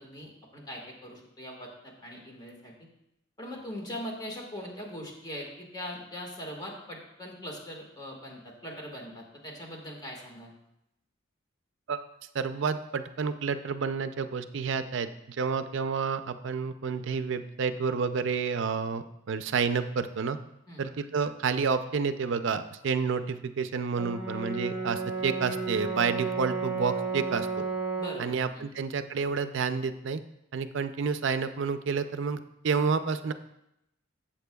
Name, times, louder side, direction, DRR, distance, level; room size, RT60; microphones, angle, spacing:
voice 1, 0.0-2.7 3.4-10.5 20.7-20.9 28.0-28.7, equal, 20° left, -1 dB, 1.7 m, -41 dB
voice 2, 12.3-20.4 20.8-27.6 28.2-30.2 30.5-33.3, right 5 dB, 60° right, 10 dB, 0.5 m, -29 dB
Brass instrument, 24.0-28.3, right 4 dB, 10° right, 2.2 m, -32 dB
13.0 x 7.4 x 2.3 m, 0.83 s
head